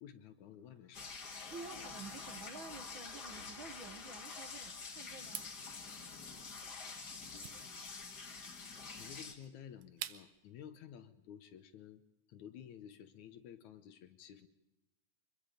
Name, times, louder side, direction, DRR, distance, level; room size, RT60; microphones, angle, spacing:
voice 1, 0.0-1.2 5.6-6.2 9.0-12.0 12.3-14.5, left 9 dB, 70° left, 10 dB, 2.2 m, -53 dB
sound 1, 0.9-9.3, left 4 dB, 35° left, 2.0 m, -47 dB
voice 2, 1.5-5.5, right 3 dB, 50° right, 5 dB, 1.8 m, -50 dB
sound 2, 5.2-10.5, right 13 dB, 75° right, 2.1 m, -50 dB
25.0 x 22.0 x 5.1 m, 0.94 s
omnidirectional pair, 3.8 m